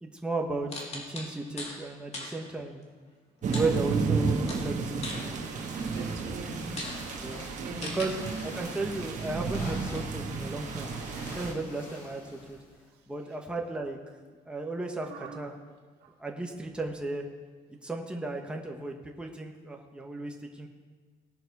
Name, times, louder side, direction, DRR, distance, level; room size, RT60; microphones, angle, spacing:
voice 1, 0.0-2.8 3.4-5.0 7.2-7.4 7.8-8.2 8.6-12.6 13.1-14.0 14.5-15.5 16.2-17.2 17.8-20.7, right 2 dB, 5° right, 1 dB, 1.3 m, -35 dB
sound 1, 0.7-1.8 2.1-2.4 3.5-4.2 4.5-5.8 6.3-6.4 6.8-7.0 7.8-8.1, left 2 dB, 40° left, 2.4 m, -39 dB
sound 2, 3.4-11.5, right 4 dB, 45° right, 1.6 m, -32 dB
sound 3, 5.1-12.9, left 1 dB, 80° left, 4.3 m, -46 dB
voice 2, 5.8-6.8 7.5-8.4 15.0-15.6 16.0-16.1, right 3 dB, 80° right, -1 dB, 2.1 m, -42 dB
19.0 x 6.4 x 4.7 m, 1.4 s
cardioid pair, 110°, 17 cm